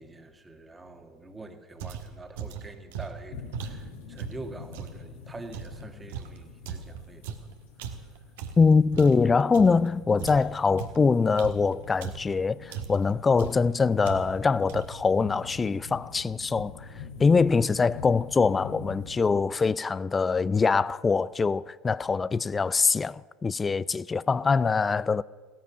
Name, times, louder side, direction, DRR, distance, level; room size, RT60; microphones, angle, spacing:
voice 1, 0.0-7.4, right 2 dB, 15° right, 1.8 m, -45 dB
sound 1, 1.8-5.0 5.5-9.9 10.2-12.4 12.7-13.1 13.4-13.7 14.0-14.4 14.7-15.1, right 7 dB, 70° right, 1.5 m, -38 dB
sound 2, 3.3-19.3, left 6 dB, 80° left, 4.3 m, -45 dB
voice 2, 8.6-16.9 17.2-25.2, left 4 dB, 20° left, 0.4 m, -23 dB
16.5 x 13.5 x 6.1 m
hypercardioid pair, 75°, 0 cm